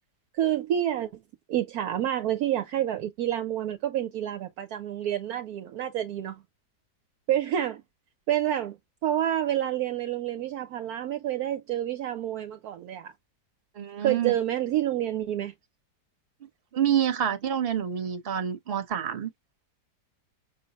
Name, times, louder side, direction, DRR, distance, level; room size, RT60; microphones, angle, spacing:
voice 1, 0.3-1.2 1.5-6.4 7.3-7.8 8.3-13.1 14.0-15.5, right 11 dB, 70° right, 1.0 m, -28 dB
voice 2, 13.7-14.3 16.7-19.3, right 9 dB, 40° right, 1.0 m, -27 dB
5.6 x 2.0 x 3.9 m
omnidirectional pair, 1.8 m